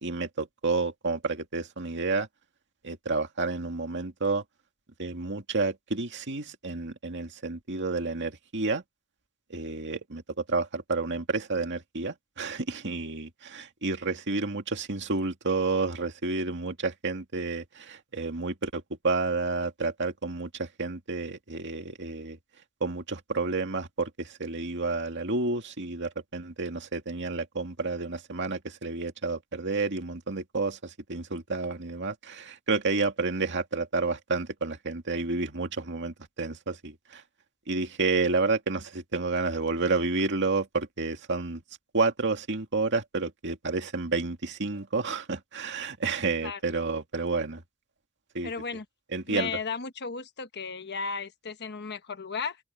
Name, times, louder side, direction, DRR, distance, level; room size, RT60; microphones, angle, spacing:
voice 1, 0.0-2.3 2.8-4.4 5.0-8.8 9.5-22.4 22.8-37.2 37.7-41.6 41.9-47.6 48.3-48.5 49.1-49.6, right 3 dB, 55° right, 2.2 m, -30 dB
voice 2, 48.4-48.8 49.3-52.6, left 5 dB, 50° left, 1.2 m, -35 dB
open air
head